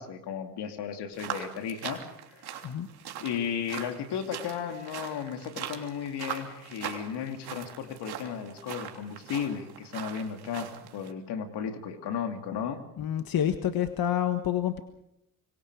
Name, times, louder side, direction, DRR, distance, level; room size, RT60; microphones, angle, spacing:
voice 1, 0.0-2.0 2.3-2.5 3.2-12.8, left 7 dB, 80° left, 6 dB, 2.9 m, -34 dB
sound 1, 1.1-11.1, right 9 dB, 70° right, 3.2 m, -41 dB
voice 2, 13.0-14.8, left 10 dB, 60° left, 8 dB, 1.6 m, -28 dB
26.0 x 23.5 x 4.9 m, 0.81 s
supercardioid pair, 70°, 40 cm